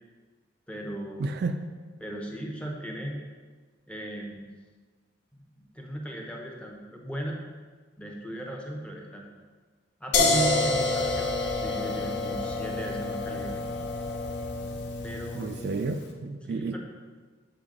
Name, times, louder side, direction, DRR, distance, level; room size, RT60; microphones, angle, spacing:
voice 1, 0.7-1.3 2.0-3.2 3.9-4.5 5.3-7.4 8.0-9.3 10.0-13.5 15.0-15.5 16.4-16.8, right 1 dB, 5° left, 0 dB, 0.7 m, -36 dB
voice 2, 1.2-1.6 15.3-16.8, right 3 dB, 50° right, 7 dB, 0.3 m, -31 dB
sound 1, 10.1-15.9, left 2 dB, 55° left, 0.7 m, -28 dB
7.8 x 4.0 x 3.8 m, 1.4 s
head